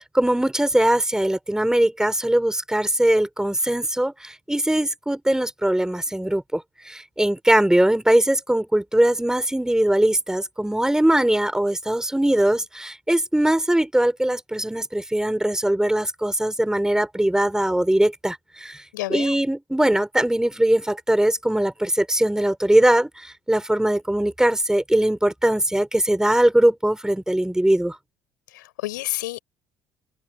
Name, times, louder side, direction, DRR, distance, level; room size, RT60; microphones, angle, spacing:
voice 1, 0.1-6.6 6.9-18.8 19.1-23.1 23.5-28.0, right 1 dB, 5° right, 5.6 m, -21 dB
voice 2, 18.9-19.4 28.5-29.4, left 17 dB, 80° left, 6.8 m, -30 dB
open air
hypercardioid pair, 60°, 10 cm